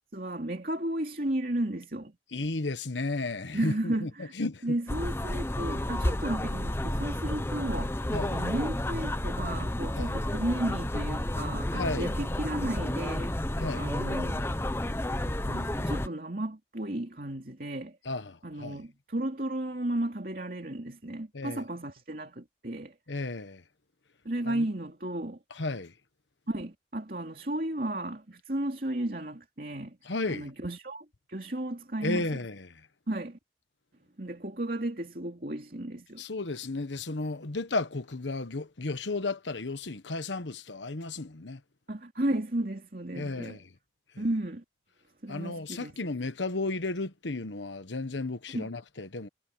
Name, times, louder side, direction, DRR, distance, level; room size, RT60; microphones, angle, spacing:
voice 1, 0.1-2.1 3.5-4.3 4.6-13.3 13.7-14.5 15.2-18.0 18.4-22.9 24.2-25.4 26.5-30.0 30.3-32.3 33.1-33.4 34.2-36.2 41.9-43.6 44.2-44.6 45.2-45.9 48.5-48.7, right 1 dB, 50° right, 2.8 m, -34 dB
voice 2, 2.3-4.1 4.3-4.8 8.1-8.4 9.9-10.1 11.7-12.1 13.6-13.9 18.0-18.8 21.3-21.6 23.1-23.6 24.5-24.6 25.5-25.9 30.0-30.5 32.0-32.9 36.2-41.6 43.1-43.7 44.1-44.2 45.3-49.3, left 2 dB, 90° left, 1.3 m, -34 dB
sound 1, 4.9-16.1, left 1 dB, 15° left, 0.8 m, -31 dB
head